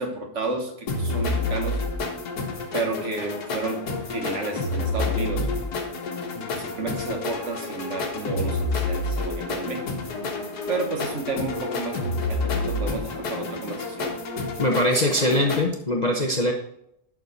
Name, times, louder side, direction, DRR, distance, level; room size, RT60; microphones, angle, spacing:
voice 1, 0.0-1.8 2.7-5.5 6.5-9.9 10.7-14.3, right 3 dB, 50° right, 4 dB, 1.4 m, -31 dB
sound 1, 0.9-15.6, left 2 dB, 85° left, 1.8 m, -29 dB
voice 2, 14.6-16.5, left 1 dB, 35° left, 1 dB, 0.7 m, -22 dB
10.5 x 4.9 x 4.1 m, 0.75 s
omnidirectional pair, 1.6 m